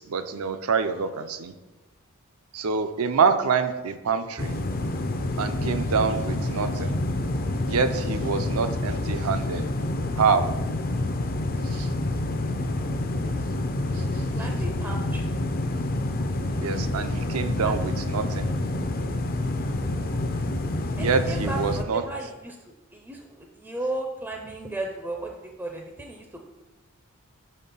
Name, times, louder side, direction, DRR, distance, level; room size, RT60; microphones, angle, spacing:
voice 1, 0.0-1.5 2.5-4.6 5.4-7.0 7.7-9.7 10.2-10.4 11.6-11.9 16.6-18.5 21.0-22.0, right 5 dB, 75° right, 9 dB, 0.5 m, -26 dB
sound 1, 4.4-21.8, left 1 dB, 40° left, 0.5 m, -28 dB
voice 2, 14.3-15.2 17.6-17.8 21.0-22.6 22.9-23.2 23.6-25.3 25.6-26.2, right 2 dB, 10° right, 1 dB, 0.4 m, -34 dB
5.4 x 4.3 x 5.3 m, 1.1 s
head